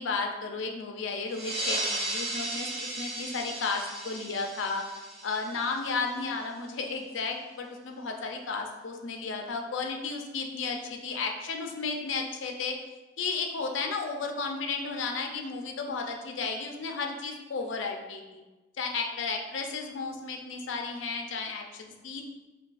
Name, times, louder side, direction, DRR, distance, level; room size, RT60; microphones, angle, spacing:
voice 1, 0.0-12.8 13.2-18.4 18.8-22.2, left 4 dB, 75° left, 3 dB, 0.5 m, -33 dB
sound 1, 1.3-6.4, right 2 dB, 30° right, 0.8 m, -35 dB
5.0 x 2.2 x 2.4 m, 1.1 s
head